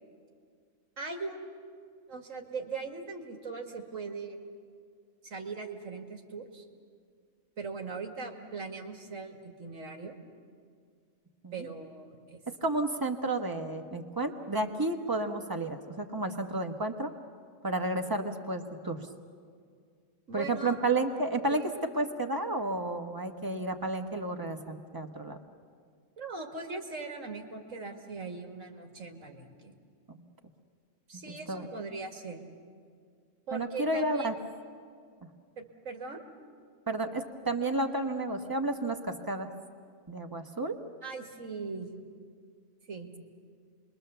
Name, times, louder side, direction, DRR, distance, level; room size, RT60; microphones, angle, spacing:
voice 1, 1.0-1.5 2.1-4.4 5.2-6.6 7.6-10.2 11.5-12.4 20.3-20.8 21.5-21.7 26.2-29.8 31.1-32.4 33.5-34.4 35.6-36.2 41.0-41.9 42.9-43.1, right 4 dB, 70° right, 3 dB, 2.4 m, -40 dB
voice 2, 12.6-17.1 17.6-19.0 20.3-21.6 21.9-25.4 30.1-30.2 31.3-31.7 33.5-34.3 36.9-39.5 40.1-40.8, right 2 dB, 15° right, 4 dB, 1.3 m, -31 dB
28.5 x 22.0 x 6.9 m, 2.1 s
omnidirectional pair, 1.4 m